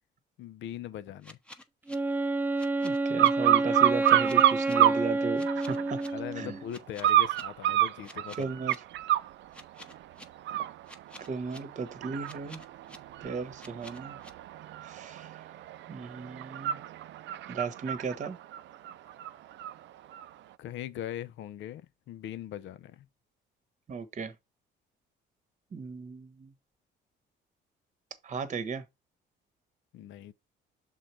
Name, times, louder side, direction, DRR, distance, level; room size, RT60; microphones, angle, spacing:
voice 1, 0.4-1.4 6.1-8.6 20.6-21.8 22.1-23.1 29.9-30.3, left 11 dB, 75° left, 0.6 m, -40 dB
sound 1, 1.2-1.9 2.6-3.3 4.0-4.7 5.3-6.1 6.7-7.4 8.0-8.8 9.5-10.2 10.9-11.6 12.2-13.0 13.6-14.3, left 1 dB, 5° left, 0.8 m, -49 dB
Wind instrument woodwind instrument, 1.9-6.7, right 2 dB, 10° right, 0.4 m, -29 dB
voice 2, 2.8-6.0 6.4-6.6 8.4-8.7 11.3-12.6 13.2-14.2 14.8-15.3 15.9-16.8 17.5-18.4 23.9-24.3 25.7-26.5 28.2-28.8, right 5 dB, 40° right, 1.0 m, -36 dB
sound 2, 3.2-5.0 5.5-6.1 7.0-9.3 9.8-10.0 10.4-19.7 20.1-20.2, right 12 dB, 65° right, 0.5 m, -28 dB
6.5 x 3.8 x 4.3 m
cardioid pair, 115°, 20 cm